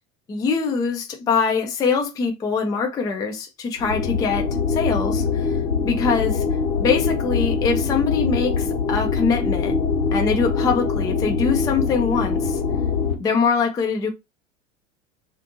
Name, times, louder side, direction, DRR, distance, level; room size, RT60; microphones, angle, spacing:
voice 1, 0.3-6.4 6.8-9.8 10.1-12.6 13.2-14.1, left 5 dB, 10° left, 0.4 m, -23 dB
sound 1, 3.8-13.1, left 5 dB, 80° left, 0.9 m, -23 dB
2.5 x 2.4 x 2.6 m
figure-of-eight pair, 75°, 40 cm